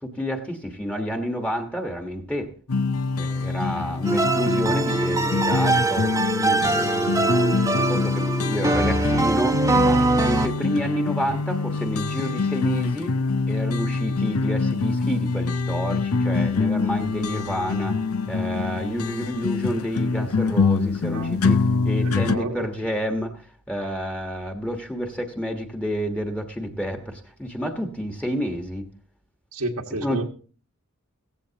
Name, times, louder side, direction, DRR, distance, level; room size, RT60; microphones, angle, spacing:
voice 1, 0.0-2.5 3.2-6.6 6.9-7.3 7.9-13.1 13.5-28.8 30.0-30.2, equal, 5° left, 4 dB, 1.3 m, -29 dB
sound 1, 2.7-22.4, left 4 dB, 70° left, 0.7 m, -25 dB
sound 2, 4.0-10.5, right 2 dB, 15° right, 0.8 m, -22 dB
voice 2, 22.0-22.7 29.5-30.2, right 2 dB, 85° right, 1 dB, 1.7 m, -30 dB
16.5 x 15.0 x 2.9 m, 0.40 s
head